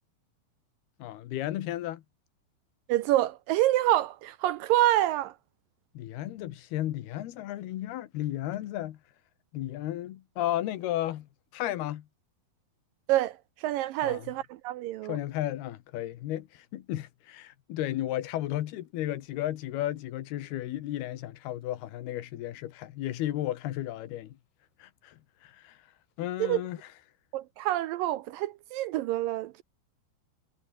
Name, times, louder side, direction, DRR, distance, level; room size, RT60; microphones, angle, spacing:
voice 1, 1.0-2.0 6.0-9.0 9.5-12.1 14.0-14.3 15.1-24.4 24.8-25.8 26.2-26.8, left 13 dB, 80° left, 3.3 m, -34 dB
voice 2, 2.9-5.3 13.1-15.2 26.4-26.6 27.3-29.6, right 14 dB, 75° right, 2.1 m, -27 dB
omnidirectional pair, 4.5 m